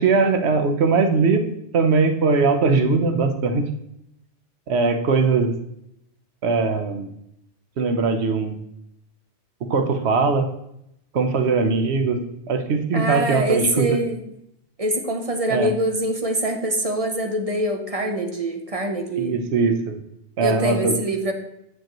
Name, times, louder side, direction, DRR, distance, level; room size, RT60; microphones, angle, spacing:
voice 1, 0.0-1.4 1.7-3.6 4.7-5.5 6.4-7.1 7.8-8.5 9.7-10.5 11.1-12.2 12.5-14.0 15.5-15.7 19.2-20.0 20.4-20.9, right 4 dB, 70° right, 6 dB, 1.1 m, -20 dB
voice 2, 12.9-14.2 14.8-19.4 20.4-21.3, right 1 dB, 35° right, 4 dB, 0.8 m, -24 dB
9.0 x 6.8 x 3.0 m, 0.78 s
omnidirectional pair, 1.1 m